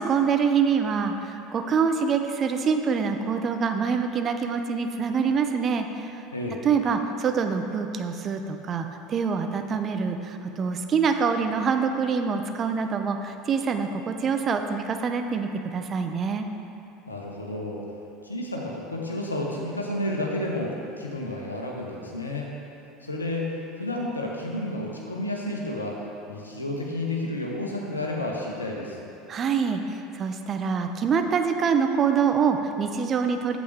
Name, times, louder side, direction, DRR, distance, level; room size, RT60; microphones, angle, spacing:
voice 1, 0.0-6.1 6.6-16.5 29.3-33.6, right 6 dB, 35° right, 6 dB, 0.5 m, -25 dB
voice 2, 17.1-17.8 18.2-22.5 23.0-23.5 23.8-26.0 26.3-29.1, left 1 dB, 85° left, -1 dB, 0.9 m, -31 dB
8.2 x 7.4 x 3.4 m, 2.7 s
figure-of-eight pair, 70°, 0 cm